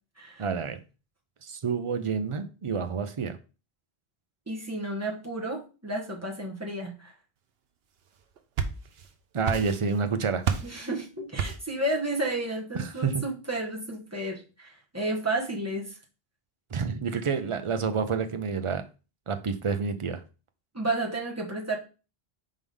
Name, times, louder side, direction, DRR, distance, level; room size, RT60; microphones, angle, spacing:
voice 1, 0.4-0.8 1.4-3.4 9.3-10.4 12.7-13.2 16.7-18.8 19.3-20.2, right 5 dB, 35° right, 0.6 m, -29 dB
voice 2, 4.5-7.1 10.6-16.0 20.7-21.8, right 2 dB, 15° right, 1.4 m, -32 dB
sound 1, 8.2-9.1 9.4-10.1 10.4-10.8 11.4-11.8, right 7 dB, 75° right, 0.9 m, -30 dB
4.8 x 3.7 x 5.4 m
omnidirectional pair, 1.1 m